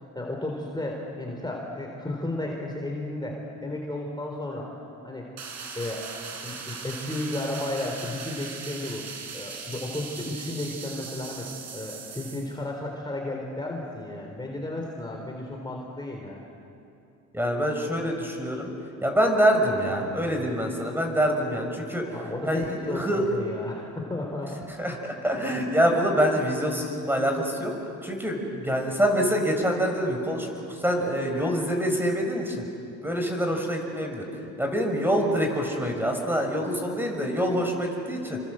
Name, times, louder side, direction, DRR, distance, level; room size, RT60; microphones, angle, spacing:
voice 1, 0.1-4.7 5.0-5.3 5.7-6.1 6.4-9.0 9.3-16.4 22.1-24.6, left 1 dB, 15° left, 0 dB, 4.0 m, -33 dB
sound 1, 5.4-12.6, right 5 dB, 60° right, 4.0 m, -39 dB
voice 2, 17.3-18.7 19.0-22.0 22.4-23.3 24.8-27.7 28.0-32.7 33.0-34.2 34.6-38.4, equal, 5° right, 2 dB, 5.9 m, -25 dB
28.5 x 24.5 x 7.8 m, 2.6 s
cardioid pair, 90°, 30 cm